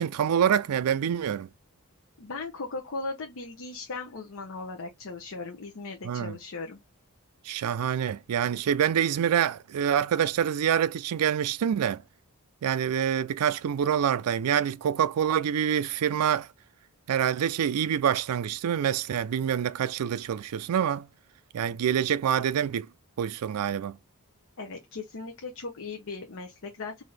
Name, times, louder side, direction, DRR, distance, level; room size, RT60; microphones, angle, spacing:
voice 1, 0.0-1.5 6.0-6.4 7.4-12.0 12.6-16.5 17.1-21.1 21.5-22.9 23.2-24.0, right 8 dB, 85° right, 0.4 m, -26 dB
voice 2, 2.2-6.8 24.6-27.0, left 3 dB, 60° left, 0.7 m, -38 dB
4.0 x 2.6 x 3.3 m
head